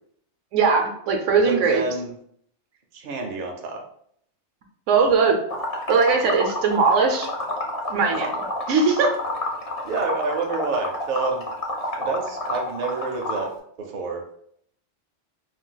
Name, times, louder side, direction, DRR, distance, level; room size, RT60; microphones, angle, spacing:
voice 1, 0.5-1.8 4.9-5.4 5.9-7.3 7.9-9.1, right 4 dB, 75° right, 2 dB, 0.9 m, -20 dB
voice 2, 1.5-2.1 2.9-3.8 9.8-11.5 11.9-13.5 13.8-14.2, right 4 dB, 55° right, 1 dB, 0.6 m, -28 dB
Liquid, 5.5-13.5, left 1 dB, 40° left, 0.6 m, -29 dB
2.6 x 2.2 x 3.8 m, 0.68 s
omnidirectional pair, 1.3 m